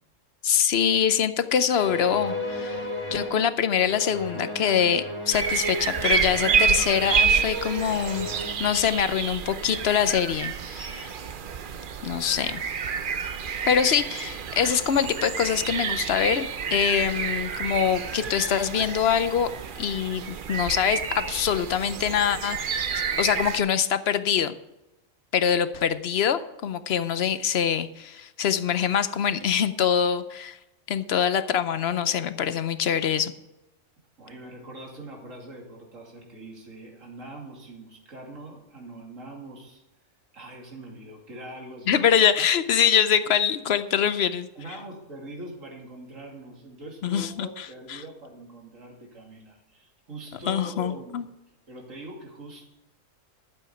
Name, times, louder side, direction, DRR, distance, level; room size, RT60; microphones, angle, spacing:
voice 1, 0.4-8.3 8.6-11.2 12.0-12.6 13.7-19.5 19.8-24.5 25.3-30.6 30.9-33.3 41.9-44.5 47.0-48.0 50.5-51.2, left 8 dB, 60° left, 12 dB, 0.8 m, -24 dB
sound 1, 1.7-8.5, left 1 dB, 25° right, 3.5 m, -34 dB
sound 2, 5.3-23.6, right 6 dB, 50° right, 0.7 m, -29 dB
voice 2, 34.2-39.8 40.3-42.1 44.5-51.2 51.7-52.7, right 2 dB, 75° right, 0 dB, 2.9 m, -42 dB
12.0 x 7.7 x 5.7 m, 0.94 s
omnidirectional pair, 1.4 m